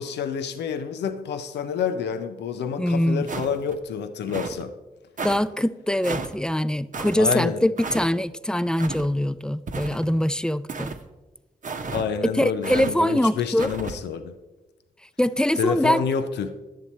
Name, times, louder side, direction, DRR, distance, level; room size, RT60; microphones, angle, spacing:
voice 1, 0.0-4.7 7.2-7.6 11.9-14.3 15.6-16.6, left 6 dB, 85° left, 9 dB, 0.5 m, -28 dB
voice 2, 2.8-3.2 5.2-10.9 12.4-13.7 15.2-16.0, left 1 dB, 5° left, 14 dB, 0.4 m, -23 dB
sound 1, 3.3-3.8 4.3-4.6 5.2-5.4 6.0-6.3 6.9-7.2 7.8-8.1 8.8-9.1 9.7-10.2 10.7-11.0 11.6-12.1 12.6-12.9 13.6-14.0, right 4 dB, 50° right, 0.9 m, -33 dB
10.5 x 7.5 x 4.2 m, 1.1 s
supercardioid pair, 45°, 17 cm